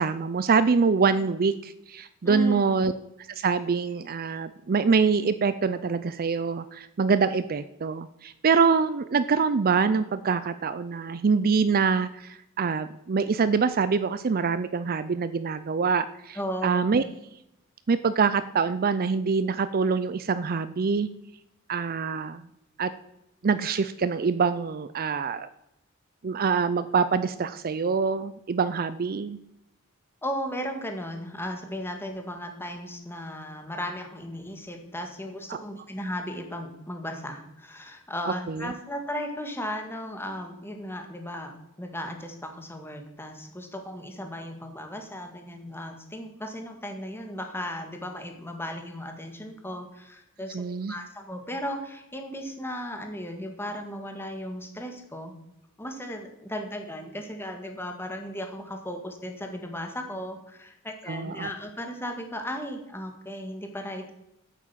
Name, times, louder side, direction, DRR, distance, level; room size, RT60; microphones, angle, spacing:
voice 1, 0.0-2.9 3.4-16.4 16.6-17.0 17.9-21.1 21.7-22.4 22.8-22.9 23.4-25.5 26.2-29.4 35.5-35.6 38.5-38.7 50.5-50.9 61.1-61.5, right 5 dB, 45° right, 13 dB, 0.5 m, -25 dB
voice 2, 2.2-2.8 16.3-16.8 30.2-55.3 55.8-64.1, equal, 10° left, 4 dB, 1.8 m, -36 dB
9.2 x 8.5 x 7.4 m, 0.85 s
head